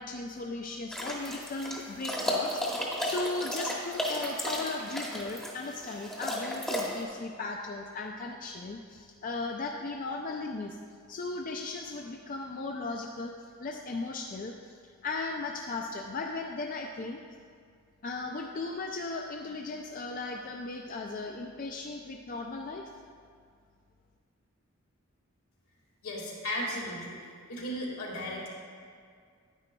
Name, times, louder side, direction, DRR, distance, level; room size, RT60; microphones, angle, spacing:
voice 1, 0.0-10.8 11.1-13.3 13.6-14.6 15.0-17.2 18.0-22.9, left 3 dB, 40° left, 2 dB, 0.3 m, -37 dB
sound 1, 0.9-7.0, equal, 5° left, 0.9 m, -34 dB
voice 2, 26.0-27.2 27.5-28.5, equal, 80° left, -3 dB, 1.9 m, -35 dB
9.7 x 9.4 x 2.2 m, 2.1 s
head